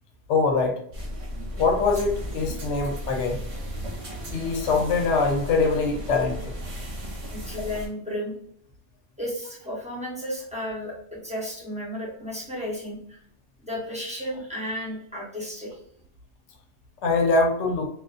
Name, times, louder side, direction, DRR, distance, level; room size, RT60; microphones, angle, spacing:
voice 1, 0.3-0.8 1.6-3.4 4.3-6.5 17.0-17.9, left 3 dB, 75° left, 3 dB, 0.9 m, -23 dB
sound 1, 0.9-7.9, equal, 40° right, 0.5 m, -35 dB
voice 2, 7.3-8.3 9.2-13.2 13.6-15.8, equal, 5° right, -5 dB, 0.7 m, -33 dB
2.5 x 2.3 x 2.4 m, 0.67 s
omnidirectional pair, 1.2 m